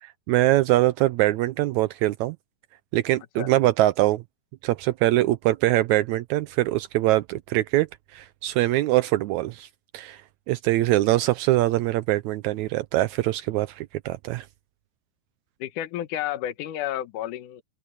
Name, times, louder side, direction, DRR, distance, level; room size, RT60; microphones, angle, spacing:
voice 1, 0.0-2.4 2.9-4.2 4.6-7.9 8.1-9.7 9.9-10.2 10.5-14.4, right 16 dB, 80° right, 1.7 m, -23 dB
voice 2, 15.6-17.6, left 12 dB, 75° left, 2.6 m, -31 dB
omnidirectional pair, 3.8 m